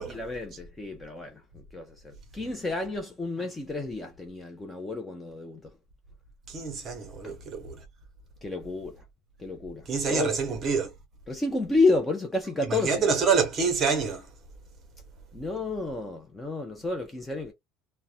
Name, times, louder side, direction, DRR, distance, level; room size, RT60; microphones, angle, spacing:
voice 1, 0.0-5.7 7.2-7.4 8.4-9.0 9.4-10.4 11.3-13.1 15.3-17.5, left 3 dB, 10° left, 0.4 m, -30 dB
voice 2, 6.5-7.8 9.9-10.9 12.6-14.3, right 5 dB, 25° right, 0.8 m, -27 dB
2.4 x 2.1 x 2.7 m
cardioid pair, 175°, 0 cm